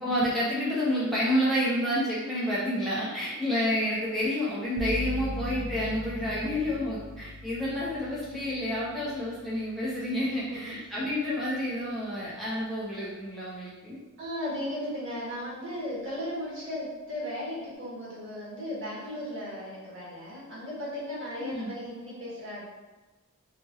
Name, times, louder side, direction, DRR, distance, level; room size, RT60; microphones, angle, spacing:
voice 1, 0.0-14.0 21.4-21.7, equal, ahead, -9 dB, 0.5 m, -29 dB
sound 1, 4.8-12.5, left 1 dB, 45° left, 0.6 m, -40 dB
voice 2, 10.3-10.7 14.2-22.7, left 1 dB, 60° right, -8 dB, 1.2 m, -36 dB
2.9 x 2.3 x 2.7 m, 1.2 s
head